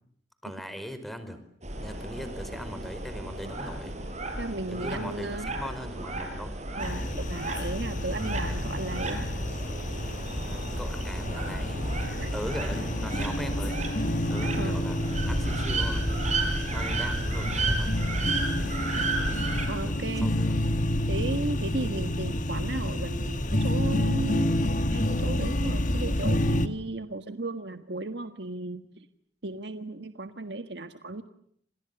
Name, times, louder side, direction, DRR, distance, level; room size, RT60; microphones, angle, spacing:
voice 1, 0.4-1.4 1.8-4.0 4.7-6.5 10.4-11.9 12.3-13.8 14.3-16.1 16.7-17.9 19.8-20.6 21.1-21.3, equal, ahead, 10 dB, 4.7 m, -39 dB
sound 1, 1.6-19.7, right 2 dB, 40° right, 5.7 m, -33 dB
voice 2, 4.4-5.5 6.7-9.3 12.0-12.3 14.6-14.8 19.7-20.3 21.1-24.5 24.9-29.0 29.4-31.2, right 2 dB, 70° right, 8 dB, 1.6 m, -35 dB
sound 2, 6.8-26.7, left 1 dB, 45° left, 1.7 m, -29 dB
29.5 x 28.0 x 6.9 m, 0.67 s
head